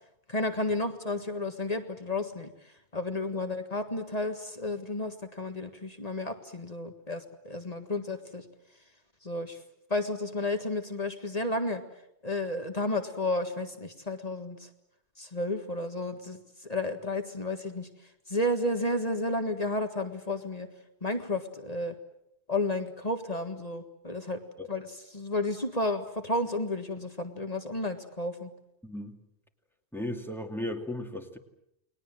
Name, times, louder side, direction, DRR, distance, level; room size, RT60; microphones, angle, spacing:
voice 1, 0.3-8.4 9.2-9.6 9.9-11.8 12.2-14.7 15.2-17.9 18.3-20.7 21.0-21.9 22.5-24.4 24.7-28.5, left 2 dB, 35° left, 6 dB, 1.8 m, -32 dB
voice 2, 28.8-29.2 29.9-31.4, left 1 dB, ahead, 3 dB, 2.4 m, -35 dB
30.0 x 21.0 x 7.7 m, 0.81 s
omnidirectional pair, 1.1 m